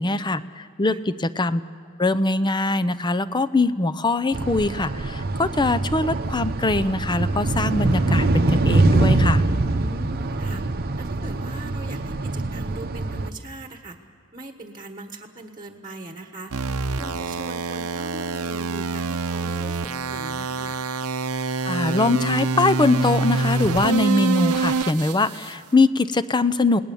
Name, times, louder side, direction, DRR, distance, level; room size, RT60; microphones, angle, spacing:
voice 1, 0.0-1.6 2.0-9.4 21.6-26.8, left 2 dB, 20° left, 14 dB, 0.6 m, -22 dB
sound 1, 4.3-13.3, right 2 dB, 45° right, 0.9 m, -23 dB
voice 2, 9.8-10.6 11.0-14.0 14.3-16.5 17.0-20.8, right 2 dB, 20° right, 4 dB, 1.4 m, -40 dB
sound 2, 16.5-25.5, right 4 dB, 75° right, 0.8 m, -26 dB
29.0 x 19.0 x 7.1 m, 2.2 s
head